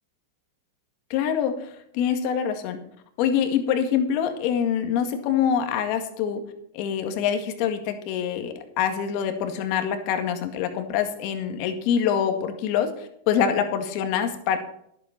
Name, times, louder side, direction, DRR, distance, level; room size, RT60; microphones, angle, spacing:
voice 1, 1.1-1.5 1.9-2.8 3.2-6.4 6.7-12.9 13.3-14.6, left 8 dB, 55° left, 6 dB, 1.9 m, -25 dB
11.0 x 7.9 x 6.0 m, 0.72 s
hypercardioid pair, 120°, 0 cm